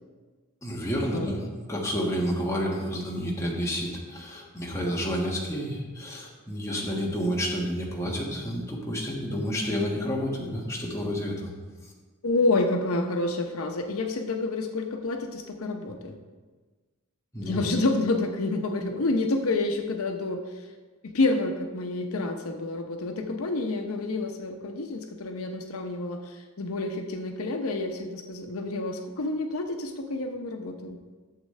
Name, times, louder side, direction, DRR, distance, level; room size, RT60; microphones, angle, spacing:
voice 1, 0.6-11.5 17.3-17.6, equal, 15° left, -3 dB, 1.5 m, -30 dB
voice 2, 12.2-16.2 17.4-20.4 21.0-31.0, left 2 dB, 80° left, 5 dB, 0.7 m, -28 dB
12.0 x 7.3 x 3.3 m, 1.4 s
head